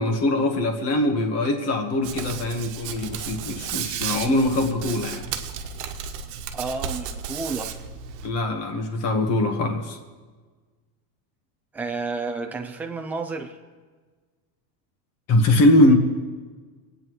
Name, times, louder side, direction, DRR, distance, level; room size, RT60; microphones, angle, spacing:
voice 1, 0.0-5.2 8.2-10.0 15.3-15.9, left 1 dB, 30° left, 4 dB, 1.5 m, -22 dB
Hands, 2.0-8.3, right 7 dB, 80° right, 1.3 m, -33 dB
voice 2, 6.5-7.7 11.7-13.6, right 4 dB, 5° right, 3 dB, 0.4 m, -31 dB
26.0 x 9.2 x 3.2 m, 1.4 s
supercardioid pair, 155°, 49 cm